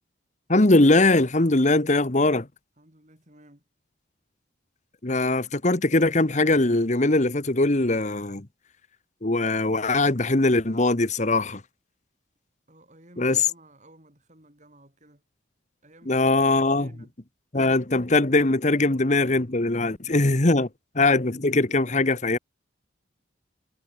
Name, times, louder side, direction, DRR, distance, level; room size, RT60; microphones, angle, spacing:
voice 1, 0.5-2.5 5.0-8.5 9.2-11.6 13.2-13.4 16.1-16.9 17.5-20.7 21.0-22.4, left 2 dB, 40° left, 1.3 m, -21 dB
voice 2, 2.8-3.6 12.7-15.2 15.8-17.1 18.7-18.8 19.7-20.7, right 1 dB, 40° right, 6.8 m, -54 dB
head